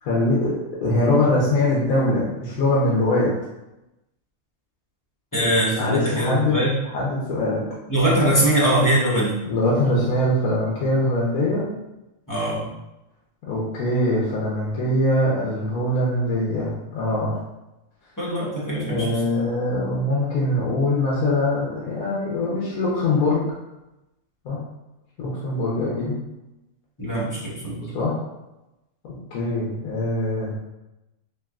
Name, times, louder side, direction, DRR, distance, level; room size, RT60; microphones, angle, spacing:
voice 1, 0.0-0.5 0.8-3.3 5.4-5.5 5.8-6.6 6.9-7.6 9.4-11.6 13.4-17.3 18.7-23.4 24.4-24.6 25.2-26.2 27.9-28.2 29.0-30.5, left 1 dB, 75° left, -6 dB, 1.1 m, -22 dB
voice 2, 5.3-6.7 7.9-9.4 12.3-12.7 18.2-19.4 27.0-27.9, right 1 dB, 20° left, -7 dB, 0.6 m, -22 dB
3.4 x 2.7 x 2.3 m, 0.95 s
omnidirectional pair, 1.5 m